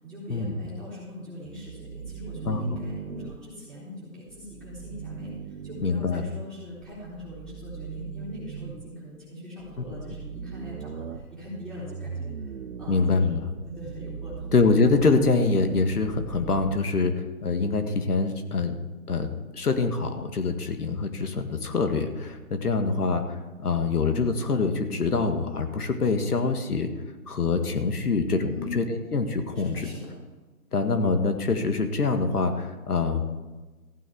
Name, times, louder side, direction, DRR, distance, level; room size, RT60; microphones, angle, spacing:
voice 1, 0.0-14.5 28.4-28.8 29.5-30.1, left 1 dB, ahead, -10 dB, 3.8 m, -41 dB
sound 1, 1.4-3.4 4.3-5.9 6.8-8.9 9.6-16.8, right 7 dB, 65° right, 0.9 m, -40 dB
voice 2, 5.8-6.2 12.9-13.4 14.5-18.7 19.1-19.3 19.5-26.9 27.3-29.8 30.7-33.2, left 4 dB, 75° left, 7 dB, 1.9 m, -25 dB
15.0 x 9.5 x 4.6 m, 1.2 s
hypercardioid pair, 160°, 46 cm